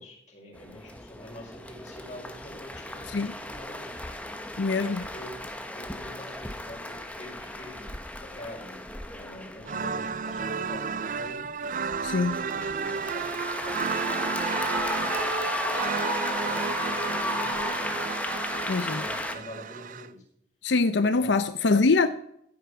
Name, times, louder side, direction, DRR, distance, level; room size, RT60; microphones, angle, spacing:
voice 1, 0.0-4.0 4.8-5.4 5.7-7.9 8.2-11.5 12.1-15.8 16.1-18.0 18.7-20.2 21.1-21.4, left 1 dB, 40° left, -2 dB, 5.3 m, -46 dB
sound 1, 0.6-19.3, left 1 dB, 10° left, 1.1 m, -34 dB
voice 2, 4.6-5.0 12.0-12.4 18.7-19.0 20.6-22.1, left 3 dB, 75° left, 11 dB, 0.6 m, -23 dB
sound 2, 9.6-20.1, right 5 dB, 45° right, 0.4 m, -32 dB
15.0 x 9.2 x 4.9 m, 0.74 s
head